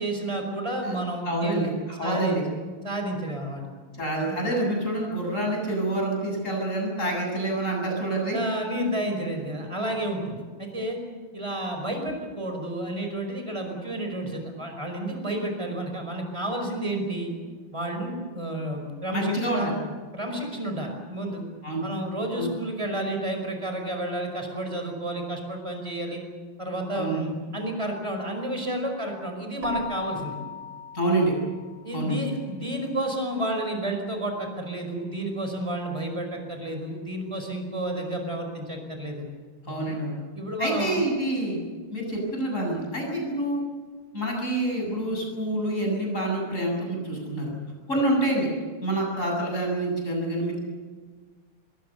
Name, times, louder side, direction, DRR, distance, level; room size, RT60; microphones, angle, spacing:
voice 1, 0.0-1.7 2.0-2.4 2.8-3.6 4.2-4.4 8.3-11.0 11.3-17.3 17.7-19.7 20.1-21.4 21.8-26.2 26.6-30.4 31.8-39.2 39.7-39.9 40.3-41.0, right 1 dB, 15° right, 3 dB, 5.4 m, -31 dB
voice 2, 1.2-2.4 4.0-8.4 19.1-19.7 21.6-21.8 22.4-22.5 26.9-27.2 30.9-31.3 31.9-32.2 39.6-40.2 40.6-41.6 41.9-43.6 44.1-47.5 47.9-48.5 48.8-50.6, right 1 dB, 35° left, 0 dB, 8.1 m, -27 dB
Keyboard (musical), 29.6-32.1, left 3 dB, 45° right, 4.3 m, -36 dB
26.0 x 22.0 x 6.9 m, 1.5 s
omnidirectional pair, 2.4 m